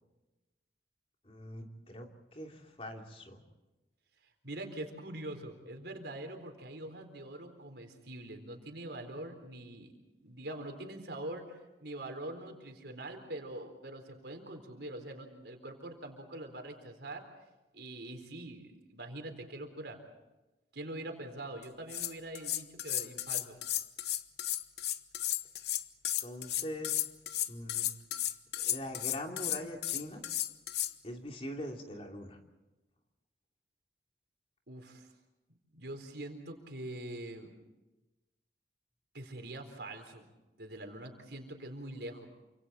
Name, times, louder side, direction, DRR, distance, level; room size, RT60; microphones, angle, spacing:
voice 1, 1.2-3.4 26.2-27.0 27.5-27.9 28.6-30.2 31.0-32.4, equal, 35° left, 2 dB, 3.1 m, -42 dB
voice 2, 4.4-9.9 10.2-17.2 17.7-20.0 20.7-23.6 34.7-35.1 35.7-37.5 39.1-40.2 40.6-42.3, right 1 dB, 75° right, 5 dB, 4.0 m, -44 dB
sound 1, 21.6-21.7 21.9-30.9, left 13 dB, 70° left, 0.9 m, -34 dB
28.5 x 26.0 x 4.3 m, 1.1 s
head